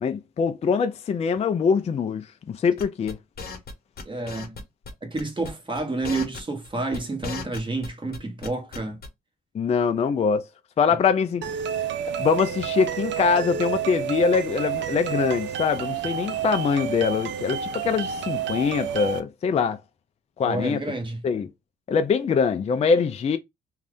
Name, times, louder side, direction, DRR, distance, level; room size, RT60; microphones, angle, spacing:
voice 1, 0.0-3.2 9.5-10.4 10.8-11.5 12.2-19.8 20.4-20.8 21.2-21.5 21.9-23.4, left 6 dB, 30° left, 0.4 m, -23 dB
sound 1, 2.8-3.7 4.0-4.6 4.9-5.0 5.2-5.5 5.7-7.9 8.1-9.1, left 4 dB, 50° left, 0.9 m, -35 dB
voice 2, 4.1-4.5 5.0-9.0 20.4-21.2, right 2 dB, 25° right, 1.1 m, -29 dB
sound 2, 11.4-19.2, right 8 dB, 65° right, 0.5 m, -29 dB
2.6 x 2.4 x 3.4 m
cardioid pair, 90°, 20 cm